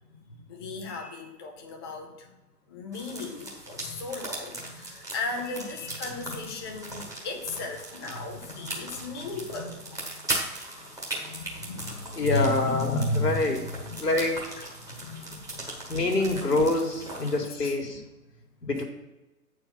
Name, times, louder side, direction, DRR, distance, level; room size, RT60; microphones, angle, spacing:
voice 1, 0.1-2.4 2.7-10.4 10.7-14.1 14.8-16.0 17.4-17.8 18.7-18.8, left 2 dB, 20° left, 1 dB, 0.4 m, -35 dB
sound 1, 2.9-17.4, right 2 dB, 5° right, 1.4 m, -39 dB
voice 2, 12.2-13.6 14.0-14.4 15.9-18.0 18.7-18.8, left 2 dB, 90° left, 2 dB, 1.7 m, -26 dB
8.4 x 4.5 x 5.5 m, 1.0 s
figure-of-eight pair, 125°, 47 cm